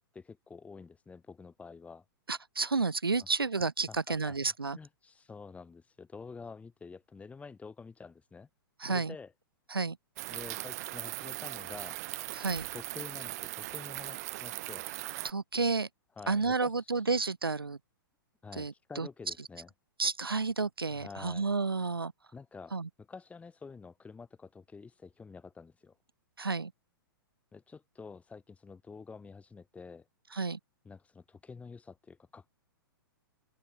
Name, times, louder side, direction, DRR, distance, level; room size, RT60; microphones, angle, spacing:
voice 1, 0.0-2.0 3.9-4.4 4.7-8.5 8.8-9.3 10.3-12.0 12.7-14.9 16.2-17.1 18.4-19.7 21.0-21.5 22.3-22.8 23.1-25.9 27.5-30.1 30.9-32.5, left 4 dB, 10° left, 7.6 m, -48 dB
voice 2, 2.3-4.8 8.8-9.1 9.7-10.0 12.3-12.7 15.2-15.9 16.3-17.8 18.5-19.1 20.0-22.1 22.7-22.9 26.4-26.7 30.3-30.6, right 4 dB, 80° right, 2.4 m, -31 dB
sound 1, 10.2-15.3, right 19 dB, 45° right, 1.4 m, -39 dB
open air
figure-of-eight pair, 110°, 12 cm